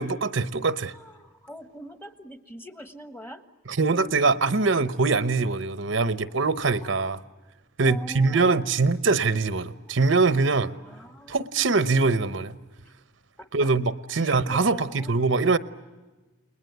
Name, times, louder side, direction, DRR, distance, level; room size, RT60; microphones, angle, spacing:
voice 1, 0.0-0.9 3.7-7.2 7.8-10.7 11.3-12.6 13.5-15.6, right 3 dB, 70° right, 0.9 m, -23 dB
voice 2, 0.9-3.4 6.8-6.9 7.8-8.6 10.6-11.4 12.8-12.9 13.4-13.7 14.1-15.2, equal, 10° left, 1.2 m, -43 dB
30.0 x 21.0 x 8.0 m
head